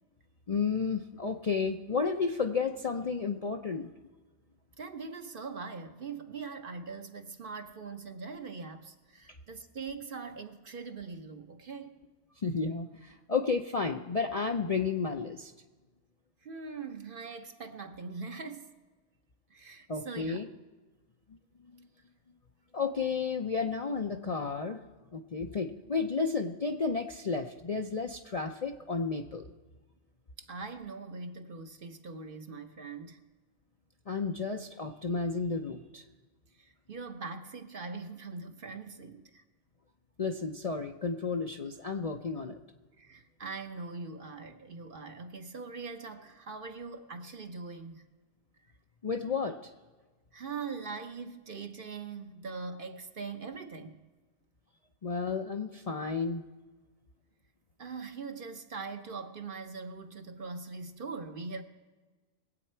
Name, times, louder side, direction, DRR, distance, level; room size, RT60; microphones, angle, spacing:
voice 1, 0.5-3.9 12.4-15.5 19.9-20.5 21.7-21.9 22.7-24.8 25.1-29.5 34.1-36.0 40.2-42.6 49.0-49.7 55.0-56.4, left 4 dB, 45° left, 0.5 m, -32 dB
voice 2, 4.8-12.0 16.4-18.7 19.5-20.4 30.4-33.2 36.5-39.4 43.0-48.0 50.3-54.0 57.8-61.6, right 4 dB, 50° right, 1.0 m, -42 dB
22.0 x 8.4 x 4.4 m
omnidirectional pair, 1.3 m